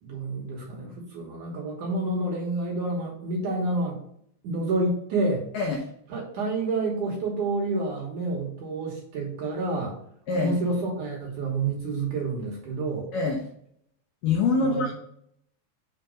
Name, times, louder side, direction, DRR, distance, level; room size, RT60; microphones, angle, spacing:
voice 1, 0.0-4.0 4.4-5.4 6.1-10.0 10.4-13.1 14.6-14.9, right 2 dB, 65° right, -1 dB, 2.2 m, -29 dB
voice 2, 5.5-5.9 10.3-10.5 13.1-13.4 14.2-14.9, left 4 dB, 80° left, 2 dB, 1.9 m, -24 dB
6.2 x 4.5 x 5.2 m, 0.68 s
omnidirectional pair, 4.9 m